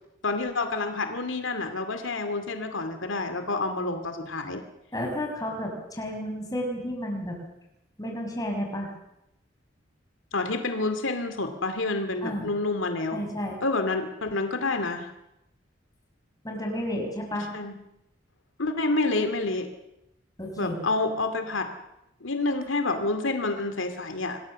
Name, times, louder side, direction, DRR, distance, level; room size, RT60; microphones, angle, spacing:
voice 1, 0.2-4.6 10.3-13.3 13.6-15.1 17.5-17.7 18.6-19.7 20.6-21.7 22.2-24.4, left 3 dB, 80° left, 7 dB, 2.5 m, -28 dB
voice 2, 4.9-7.4 8.0-8.9 12.2-12.5 13.1-13.5 16.4-17.5 20.4-20.8, equal, 20° left, 1 dB, 6.0 m, -32 dB
27.0 x 20.0 x 7.5 m, 0.87 s
head